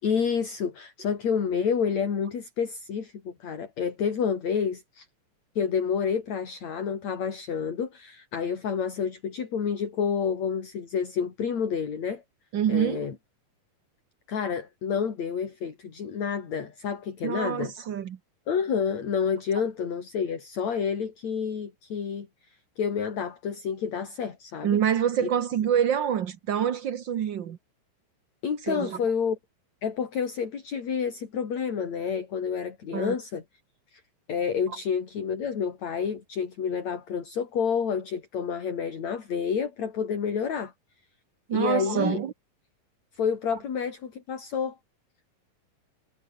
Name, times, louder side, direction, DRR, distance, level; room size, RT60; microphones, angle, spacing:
voice 1, 0.0-5.1 5.6-12.2 12.7-13.1 14.3-17.7 18.5-22.3 22.8-24.8 25.2-25.3 28.4-29.4 29.8-33.4 33.9-34.0 34.3-40.7 41.5-42.2 43.1-44.8, left 6 dB, 55° left, 4.4 m, -29 dB
voice 2, 12.5-13.1 17.2-18.2 24.6-27.6 28.7-29.0 32.9-33.1 41.5-42.3, right 9 dB, 85° right, 1.0 m, -26 dB
omnidirectional pair, 3.9 m